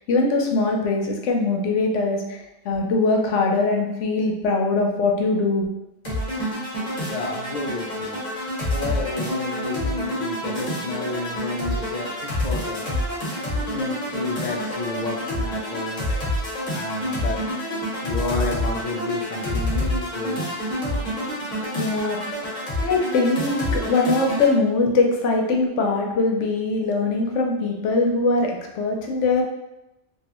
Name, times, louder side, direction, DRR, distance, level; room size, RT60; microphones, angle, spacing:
voice 1, 0.1-5.7 6.8-7.1 15.7-15.8 21.7-22.2 22.8-29.4, left 3 dB, 80° left, 1 dB, 0.9 m, -22 dB
sound 1, 6.0-24.5, left 1 dB, 40° left, 1.0 m, -28 dB
voice 2, 7.1-8.2 8.7-12.9 13.2-16.1 16.7-17.4 18.0-20.6, left 3 dB, 60° left, 0 dB, 0.4 m, -31 dB
3.1 x 2.4 x 2.9 m, 0.93 s
omnidirectional pair, 1.2 m